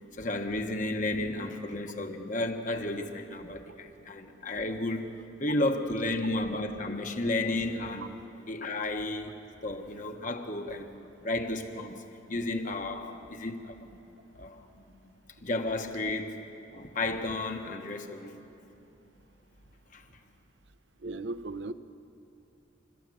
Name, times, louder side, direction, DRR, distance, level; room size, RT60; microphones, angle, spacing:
voice 1, 0.2-5.1 5.4-8.1 8.5-9.3 9.6-14.0 14.4-14.9 15.4-16.4 16.7-18.4 19.9-20.0, left 2 dB, 40° left, 5 dB, 1.4 m, -33 dB
voice 2, 21.0-21.7, right 2 dB, 60° right, 12 dB, 0.8 m, -36 dB
29.0 x 14.0 x 7.9 m, 2.9 s
head